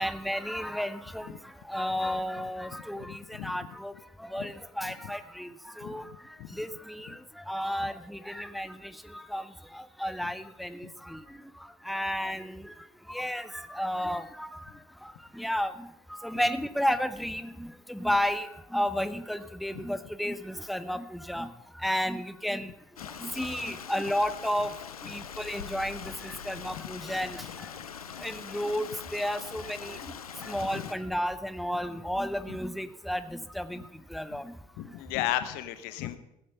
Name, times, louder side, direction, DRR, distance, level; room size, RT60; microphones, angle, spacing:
voice 1, 0.0-3.9 4.2-6.1 6.5-12.7 13.1-14.7 15.0-21.5 21.8-22.7 23.2-24.7 25.0-27.7 28.2-30.0 30.4-34.5, equal, ahead, 12 dB, 0.7 m, -33 dB
voice 2, 3.1-3.6 4.4-4.5 4.8-4.9 5.8-6.5 19.7-19.8 30.4-30.5 30.7-30.9 34.3-34.4 34.8-36.2, left 13 dB, 60° left, 12 dB, 1.0 m, -35 dB
Stream, 23.0-30.9, left 7 dB, 85° left, 0.6 m, -42 dB
15.5 x 8.6 x 5.5 m, 0.86 s
figure-of-eight pair, 60°, 18 cm